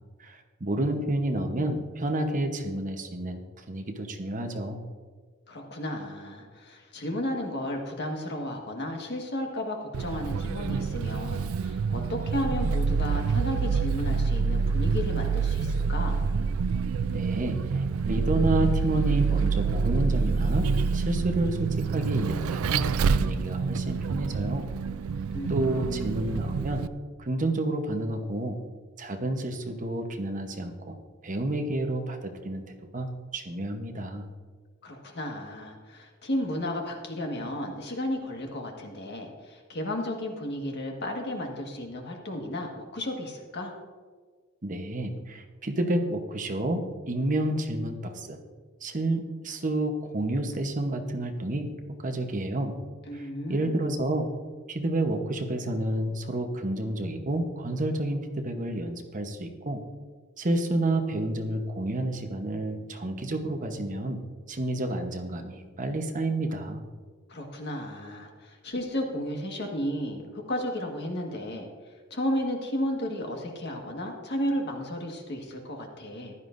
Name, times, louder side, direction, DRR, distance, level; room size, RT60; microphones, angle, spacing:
voice 1, 0.2-3.4 3.7-4.8 17.1-20.7 20.9-22.9 23.2-24.7 25.5-26.8 27.2-28.6 29.0-31.0 31.2-32.6 32.9-34.3 44.6-48.4 48.8-51.7 52.0-52.8 53.1-54.3 54.7-59.8 60.4-64.2 64.5-66.8, right 1 dB, 40° right, 4 dB, 1.0 m, -30 dB
voice 2, 5.5-16.2 25.3-26.1 34.8-43.7 53.1-53.9 67.3-71.7 72.1-76.3, left 1 dB, 55° left, 2 dB, 1.7 m, -33 dB
Vehicle, 9.9-26.9, right 5 dB, 85° right, 0.4 m, -27 dB
15.0 x 11.0 x 2.6 m, 1.5 s
head